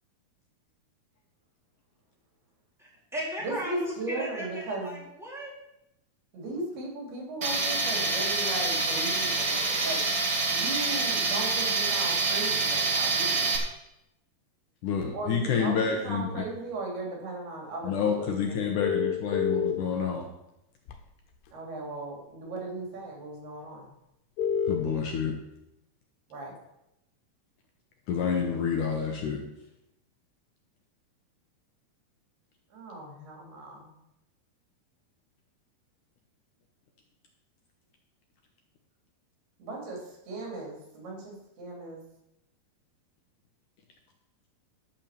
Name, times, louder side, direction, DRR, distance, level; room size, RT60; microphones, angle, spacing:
voice 1, 2.8-5.5, equal, ahead, -6 dB, 3.7 m, -36 dB
voice 2, 3.4-5.0 6.3-10.0 10.5-13.6 15.1-18.6 21.5-23.9 26.3-26.6 32.7-33.9 39.6-42.0, right 2 dB, 80° right, -1 dB, 5.0 m, -37 dB
Tools, 7.4-13.6, right 3 dB, 45° right, 1.5 m, -27 dB
voice 3, 14.8-16.3 17.8-20.3 24.7-25.3 28.1-29.4, left 6 dB, 70° left, 2 dB, 2.2 m, -28 dB
sound 1, 18.8-19.7 20.9-21.0 24.4-24.8, left 7 dB, 85° left, 3.0 m, -26 dB
12.0 x 5.7 x 7.3 m, 0.86 s
omnidirectional pair, 4.5 m